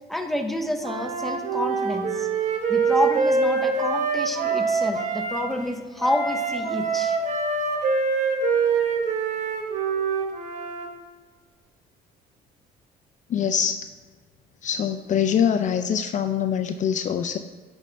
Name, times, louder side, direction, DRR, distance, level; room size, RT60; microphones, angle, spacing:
voice 1, 0.1-2.3 2.7-7.2, left 1 dB, ahead, 4 dB, 0.7 m, -28 dB
Wind instrument woodwind instrument, 0.8-5.4 6.0-10.9, right 4 dB, 45° right, 1.1 m, -24 dB
voice 2, 13.3-13.9 14.6-17.4, left 8 dB, 50° left, 8 dB, 0.4 m, -24 dB
9.9 x 5.3 x 3.4 m, 1.4 s
cardioid pair, 110°, 17 cm